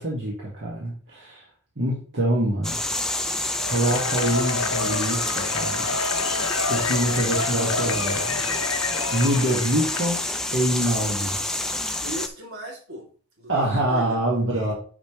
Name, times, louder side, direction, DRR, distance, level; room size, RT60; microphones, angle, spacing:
voice 1, 0.0-1.5 1.8-2.8 3.7-5.9 6.7-8.8 9.1-10.2 10.5-11.4 13.5-14.7, right 1 dB, 55° right, -4 dB, 1.8 m, -25 dB
sound 1, 2.6-12.3, left 1 dB, ahead, 0.5 m, -28 dB
Cheering / Applause / Crowd, 3.6-10.4, left 4 dB, 75° left, 0.7 m, -29 dB
voice 2, 12.0-13.1 13.4-14.2 14.5-14.7, right 1 dB, 70° right, -1 dB, 3.0 m, -38 dB
9.5 x 5.3 x 3.2 m, 0.41 s
head